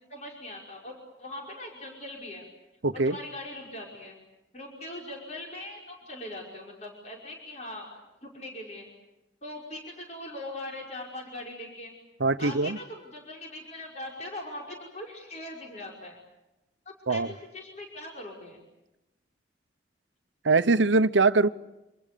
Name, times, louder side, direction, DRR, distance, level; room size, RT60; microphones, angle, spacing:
voice 1, 0.1-2.4 2.9-4.2 4.5-8.9 9.4-11.9 12.4-16.2 17.1-18.6, left 1 dB, 35° left, -1 dB, 5.4 m, -41 dB
voice 2, 2.8-3.2 12.2-12.8 17.1-17.3 20.4-21.5, right 3 dB, 80° right, 13 dB, 0.9 m, -22 dB
28.0 x 27.0 x 6.9 m, 0.96 s
head